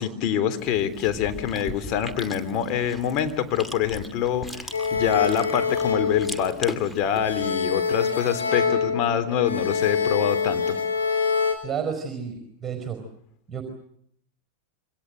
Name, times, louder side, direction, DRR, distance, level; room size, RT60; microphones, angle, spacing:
voice 1, 0.0-10.8, left 9 dB, 40° left, 9 dB, 3.5 m, -25 dB
Chewing mastication, 0.6-7.5, left 1 dB, 5° left, 2.5 m, -39 dB
sound 1, 4.7-6.9 7.2-11.5, left 5 dB, 75° left, 5.2 m, -25 dB
voice 2, 11.6-13.0 13.5-13.6, right 7 dB, 20° right, 7 dB, 4.9 m, -31 dB
27.5 x 25.0 x 7.8 m, 0.68 s
figure-of-eight pair, 90°, 0 cm